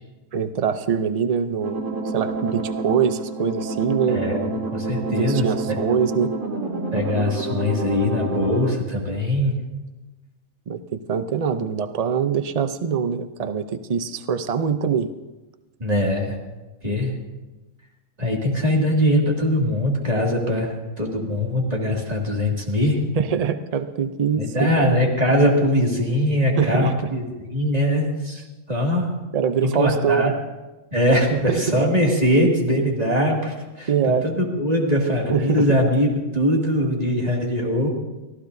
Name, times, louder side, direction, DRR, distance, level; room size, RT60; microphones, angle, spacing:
voice 1, 0.3-1.8 2.0-4.2 5.1-6.3 10.7-15.1 20.5-20.6 23.2-25.0 26.6-27.1 29.3-30.3 31.3-31.8 33.9-34.3 35.3-35.7, right 7 dB, 85° right, 9 dB, 0.3 m, -23 dB
sound 1, 1.6-8.7, right 3 dB, 60° right, 2.9 m, -28 dB
voice 2, 4.1-5.8 6.9-9.6 15.8-16.4 16.8-17.2 18.2-23.0 24.4-27.2 27.5-28.4 28.7-29.1 29.6-30.3 30.9-36.1 36.3-37.9, equal, 25° right, -1 dB, 2.3 m, -21 dB
23.5 x 15.5 x 2.7 m, 1.1 s
omnidirectional pair, 1.5 m